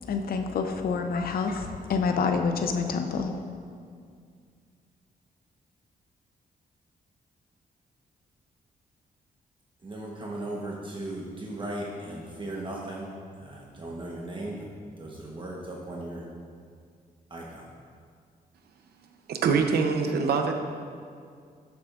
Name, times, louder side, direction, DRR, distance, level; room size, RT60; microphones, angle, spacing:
voice 1, 0.1-3.3, left 5 dB, 70° left, 6 dB, 0.7 m, -27 dB
voice 2, 9.8-13.1 13.4-14.7 15.0-16.3 17.3-17.6, right 1 dB, 30° right, -3 dB, 1.1 m, -37 dB
voice 3, 19.3-20.5, right 5 dB, 80° right, 5 dB, 0.8 m, -24 dB
12.5 x 7.1 x 2.5 m, 2.2 s
cardioid pair, 95°, 16 cm